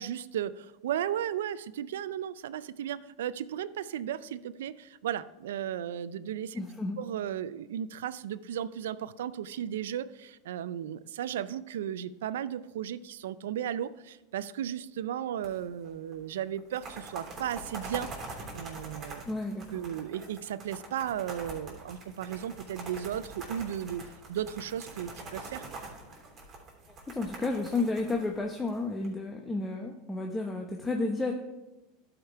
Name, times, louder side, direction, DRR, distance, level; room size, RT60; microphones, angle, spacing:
voice 1, 0.0-6.6 7.0-18.1 18.5-19.2 19.7-25.6, right 10 dB, 85° right, 16 dB, 0.4 m, -35 dB
voice 2, 6.5-7.0 19.2-19.8 27.1-31.3, left 3 dB, 15° left, 2 dB, 0.8 m, -32 dB
sound 1, 15.4-16.1 16.6-29.1, right 3 dB, 30° right, 3.4 m, -44 dB
11.5 x 5.1 x 4.6 m, 1.0 s
supercardioid pair, 115°, 0 cm